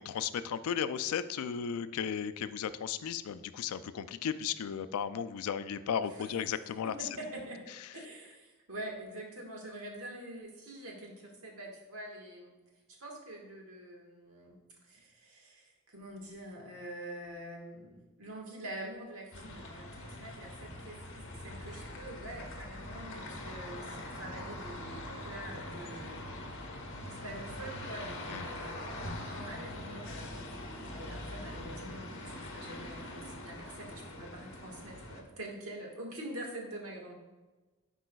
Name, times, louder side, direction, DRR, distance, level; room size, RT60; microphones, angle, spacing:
voice 1, 0.0-6.9 28.3-28.5, left 8 dB, 75° left, 13 dB, 0.3 m, -35 dB
voice 2, 6.1-6.6 6.8-7.6 7.9-12.5 12.9-14.6 14.8-26.4 27.0-28.8 29.3-30.6 30.9-37.1, right 1 dB, 70° right, 0 dB, 1.5 m, -45 dB
sound 1, 19.3-35.2, left 1 dB, 55° left, 1.0 m, -43 dB
10.0 x 4.8 x 2.3 m, 1.2 s
head